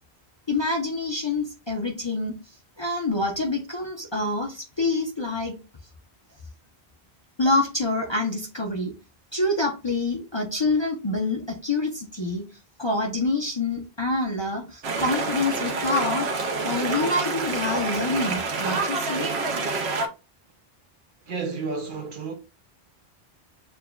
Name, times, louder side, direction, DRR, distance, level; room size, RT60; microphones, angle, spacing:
voice 1, 0.5-2.3 2.8-5.5 7.4-8.9 9.3-12.4 12.8-19.3, left 2 dB, 30° left, 0.6 m, -26 dB
sound 1, 14.8-20.1, right 3 dB, 85° right, 1.0 m, -27 dB
voice 2, 21.3-22.3, right 4 dB, 55° right, 0.9 m, -31 dB
6.7 x 2.3 x 2.2 m
omnidirectional pair, 1.1 m